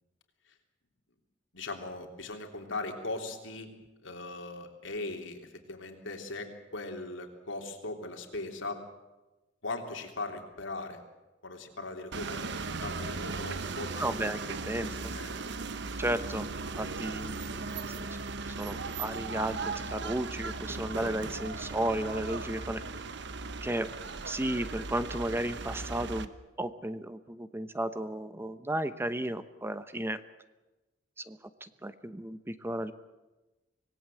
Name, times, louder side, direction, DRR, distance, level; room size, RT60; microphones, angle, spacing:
voice 1, 1.5-3.7 4.0-8.8 9.6-11.0 11.4-14.2 14.5-15.3, left 2 dB, 85° left, 3 dB, 3.3 m, -39 dB
sound 1, 12.1-26.3, right 3 dB, 65° right, 1.1 m, -37 dB
voice 2, 14.0-15.1 16.0-18.1 18.6-22.8 23.6-23.9 24.2-26.3 26.6-30.2 31.2-32.9, right 1 dB, 15° right, 12 dB, 0.9 m, -34 dB
25.5 x 19.0 x 7.7 m, 1.1 s
head